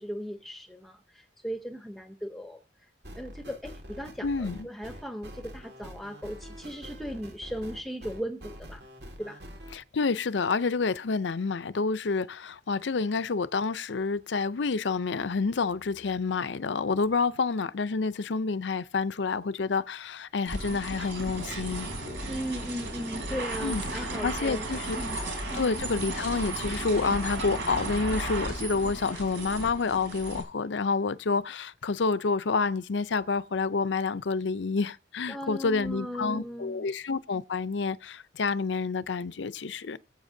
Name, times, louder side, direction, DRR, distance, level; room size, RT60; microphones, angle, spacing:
voice 1, 0.0-2.6 3.1-8.9 9.2-9.4 22.3-24.7 24.9-25.2 25.5-25.6 35.3-36.9, equal, ahead, 0.7 m, -37 dB
sound 1, 3.0-9.8, equal, 65° right, 1.9 m, -45 dB
voice 2, 4.2-4.7 9.7-21.9 23.6-25.0 25.5-40.0, left 4 dB, 75° left, 0.6 m, -29 dB
sound 2, 20.5-30.4, right 1 dB, 85° right, 3.9 m, -34 dB
21.5 x 7.9 x 2.7 m
head